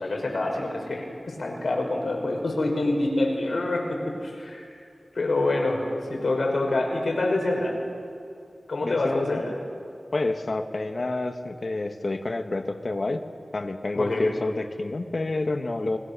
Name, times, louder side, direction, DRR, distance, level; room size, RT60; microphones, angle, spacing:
voice 1, 0.0-4.7 5.1-7.8 8.7-9.5 13.9-14.3, left 2 dB, 85° left, 1 dB, 5.4 m, -26 dB
voice 2, 8.8-9.4 10.1-13.2 13.5-16.0, left 2 dB, 55° left, 6 dB, 1.7 m, -28 dB
29.0 x 22.0 x 6.9 m, 2.5 s
wide cardioid pair, 70°, 0 cm